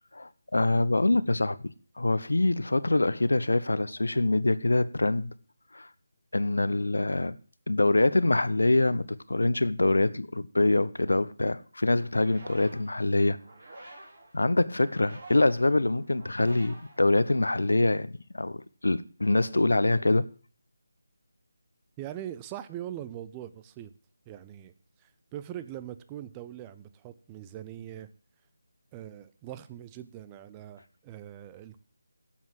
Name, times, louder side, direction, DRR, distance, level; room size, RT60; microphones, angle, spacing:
voice 1, 0.1-5.3 5.7-5.9 6.3-7.4 7.7-13.4 13.8-13.9 14.3-18.1 18.3-20.3, left 2 dB, 65° left, 0.8 m, -25 dB
sound 1, 11.9-17.7, right 2 dB, 40° right, 4.4 m, -50 dB
voice 2, 22.0-23.9 24.3-24.7 25.0-28.1 28.9-31.8, right 11 dB, 15° right, 0.5 m, -42 dB
11.0 x 7.3 x 7.5 m
figure-of-eight pair, 155°, 0 cm